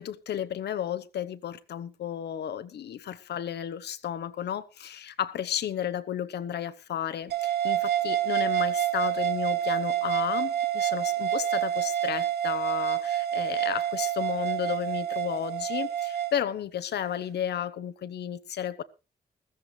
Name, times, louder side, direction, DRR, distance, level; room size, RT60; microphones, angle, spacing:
voice 1, 0.0-18.8, left 9 dB, 85° left, 1.0 m, -33 dB
sound 1, 7.3-16.3, right 11 dB, 80° right, 1.3 m, -28 dB
15.0 x 14.5 x 3.3 m
wide cardioid pair, 175°, 17 cm